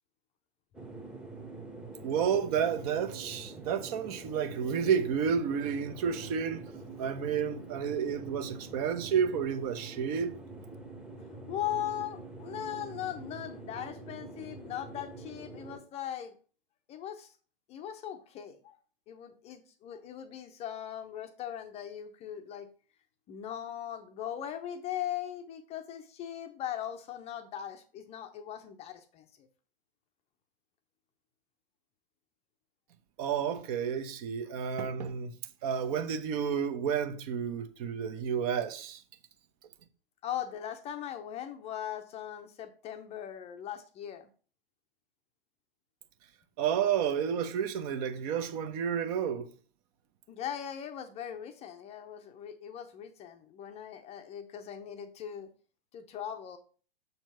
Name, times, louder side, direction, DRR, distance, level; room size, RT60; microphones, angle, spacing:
sound 1, 0.7-15.8, right 3 dB, 5° right, 1.0 m, -45 dB
voice 1, 2.0-6.7 7.0-10.3 33.2-35.3 35.6-39.0 46.6-49.5, right 7 dB, 40° right, 0.9 m, -31 dB
voice 2, 11.5-16.3 16.9-17.3 17.7-18.8 19.1-22.7 23.3-29.5 34.7-34.8 40.2-44.3 50.3-55.5 55.9-56.6, left 10 dB, 20° left, 0.6 m, -39 dB
6.7 x 4.5 x 5.5 m
figure-of-eight pair, 110°, 29 cm